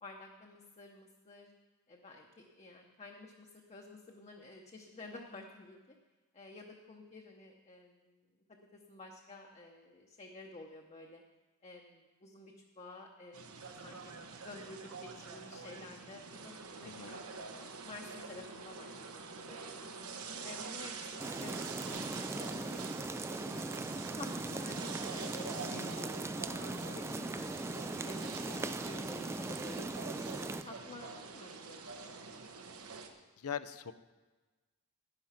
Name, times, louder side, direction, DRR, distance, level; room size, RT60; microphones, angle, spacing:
voice 1, 0.0-1.5 1.9-5.8 6.3-8.2 8.7-11.2 11.6-13.5 13.8-14.0 14.4-19.9 20.4-22.0 22.3-22.8 23.3-23.7 24.2-27.7 28.0-30.2 30.6-32.2, left 2 dB, 30° left, 1 dB, 0.9 m, -51 dB
sound 1, 13.3-33.1, right 4 dB, 75° right, 1.2 m, -46 dB
voice 2, 16.8-17.2 25.6-25.9 33.4-33.9, left 7 dB, 75° left, 14 dB, 0.6 m, -42 dB
sound 2, 21.2-30.6, right 2 dB, 10° right, 0.3 m, -39 dB
11.0 x 10.5 x 5.8 m, 1.2 s
head